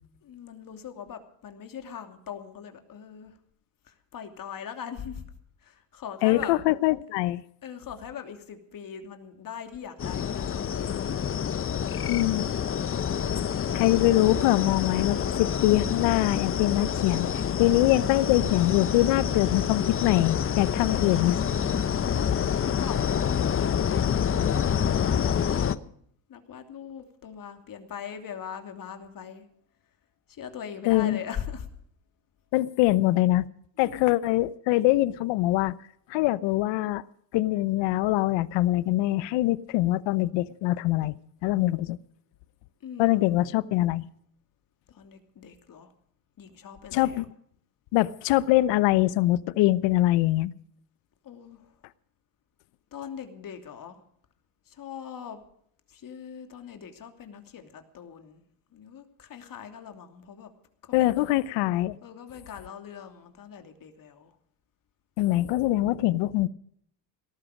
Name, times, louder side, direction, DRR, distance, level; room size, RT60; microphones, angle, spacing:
voice 1, 0.2-3.4 3.8-5.3 5.6-6.6 7.6-11.0 20.7-21.6 22.6-23.3 23.6-25.9 26.3-29.5 30.3-31.7 33.8-34.2 42.8-43.5 44.9-45.9 46.4-47.2 51.2-51.8 52.9-54.0 54.6-55.4 55.9-58.4 58.7-60.5 61.0-61.3 62.0-64.4, left 8 dB, 45° left, 6 dB, 2.9 m, -41 dB
voice 2, 6.2-7.4 12.1-12.5 13.7-21.4 30.9-31.2 32.5-33.5 33.8-35.8 36.1-37.0 37.3-41.1 41.4-42.0 43.0-44.1 46.9-47.3 47.9-50.5 60.9-62.0 65.2-66.5, left 16 dB, 70° left, 18 dB, 0.9 m, -23 dB
sound 1, 10.0-25.8, left 8 dB, 30° left, 0.8 m, -27 dB
18.0 x 14.0 x 5.0 m, 0.66 s
supercardioid pair, 85°, 45 cm